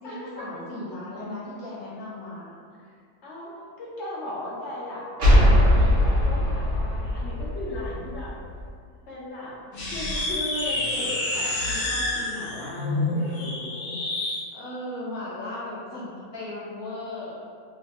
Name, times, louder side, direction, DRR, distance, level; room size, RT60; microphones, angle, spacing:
voice 1, 0.0-2.5 14.5-17.4, left 1 dB, 20° left, -11 dB, 0.7 m, -36 dB
voice 2, 3.2-8.4 9.1-9.6 9.9-14.0, left 1 dB, 60° left, -6 dB, 0.8 m, -37 dB
sound 1, 5.2-8.7, left 1 dB, 50° right, 0.6 m, -20 dB
sound 2, 9.7-14.4, left 2 dB, 85° left, 1.1 m, -28 dB
2.8 x 2.3 x 2.9 m, 2.2 s
omnidirectional pair, 1.6 m